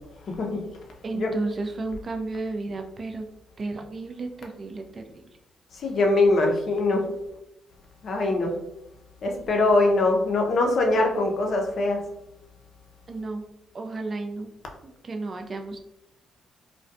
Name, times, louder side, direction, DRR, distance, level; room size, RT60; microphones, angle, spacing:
voice 1, 0.3-0.7 1.1-1.3 5.8-7.1 8.0-8.5 9.2-12.0, left 2 dB, 60° left, 2 dB, 0.5 m, -22 dB
voice 2, 1.0-3.3 3.6-5.2 13.1-13.5 13.7-14.5 14.8-15.8, right 3 dB, 45° right, 5 dB, 0.4 m, -33 dB
2.3 x 2.1 x 2.5 m, 0.84 s
hypercardioid pair, 45°, 0 cm